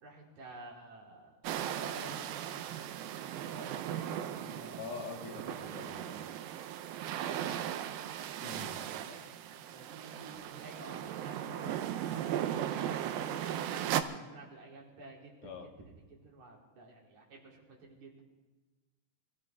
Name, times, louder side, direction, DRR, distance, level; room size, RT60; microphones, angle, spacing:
voice 1, 0.0-1.3 1.7-2.2 3.4-4.9 5.3-6.4 7.3-7.6 9.0-9.2 9.5-15.5 15.8-18.2, right 2 dB, 55° right, -3 dB, 4.2 m, -51 dB
sound 1, 1.4-14.0, right 11 dB, 85° right, 2.5 m, -37 dB
voice 2, 4.8-6.2 8.4-8.8 15.4-15.7, left 5 dB, 80° left, 2 dB, 3.3 m, -44 dB
24.5 x 15.0 x 3.5 m, 1.2 s
omnidirectional pair, 4.2 m